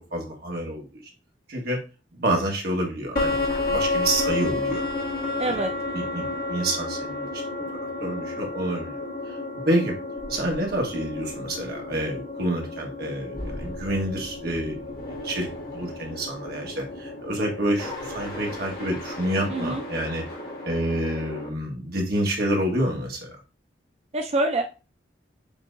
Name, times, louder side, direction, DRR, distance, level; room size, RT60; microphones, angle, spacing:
voice 1, 0.1-1.0 1.5-1.8 2.1-3.4 3.7-4.8 5.4-5.7 5.9-7.4 8.0-8.9 9.7-9.9 10.3-14.8 15.2-15.5 15.7-20.2 20.6-23.3, right 1 dB, 60° right, 0 dB, 1.4 m, -28 dB
sound 1, 3.2-21.5, left 2 dB, 55° left, 1.4 m, -32 dB
voice 2, 5.4-5.7 19.5-19.8 24.1-24.6, right 2 dB, 35° right, 4 dB, 0.4 m, -25 dB
7.0 x 2.8 x 2.5 m, 0.32 s
head